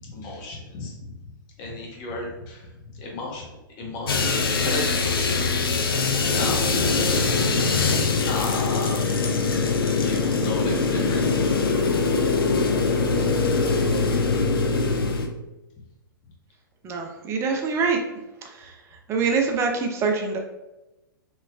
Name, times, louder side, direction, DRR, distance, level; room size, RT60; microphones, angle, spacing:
voice 1, 0.0-3.5 3.8-5.6 6.2-6.7 7.5-9.5 9.9-11.4, left 3 dB, 35° left, -1 dB, 0.9 m, -35 dB
sound 1, 4.1-15.3, left 4 dB, 80° left, 0.4 m, -22 dB
voice 2, 13.9-14.2 16.8-18.0 18.4-18.8 19.1-20.4, right 4 dB, 25° right, 3 dB, 0.4 m, -25 dB
3.0 x 3.0 x 2.3 m, 0.99 s
figure-of-eight pair, 110°, 12 cm